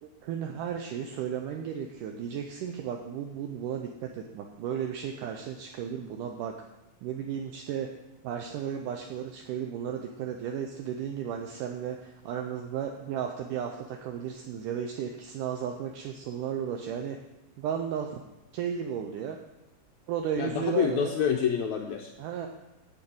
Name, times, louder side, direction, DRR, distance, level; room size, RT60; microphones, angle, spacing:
voice 1, 0.0-6.5 7.0-7.9 8.2-17.2 17.6-18.2 18.5-19.4 20.1-21.1 22.2-22.5, right 8 dB, 75° right, 3 dB, 2.2 m, -34 dB
voice 2, 20.4-22.1, left 8 dB, 80° left, 2 dB, 1.7 m, -27 dB
11.0 x 5.4 x 8.6 m, 0.95 s
omnidirectional pair, 4.0 m